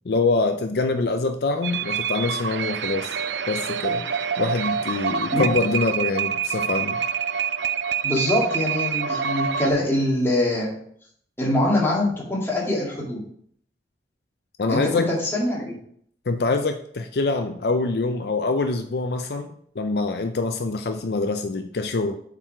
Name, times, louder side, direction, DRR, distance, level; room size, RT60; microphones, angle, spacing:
voice 1, 0.1-3.2 3.5-4.0 4.4-7.0 14.6-15.1 16.3-22.2, left 3 dB, 65° left, 7 dB, 0.5 m, -25 dB
sound 1, 1.6-9.7, right 7 dB, 80° right, 0.4 m, -26 dB
voice 2, 8.0-10.7 11.4-13.2 14.7-15.8, left 1 dB, 15° left, -4 dB, 2.0 m, -23 dB
7.4 x 4.7 x 4.5 m, 0.64 s
head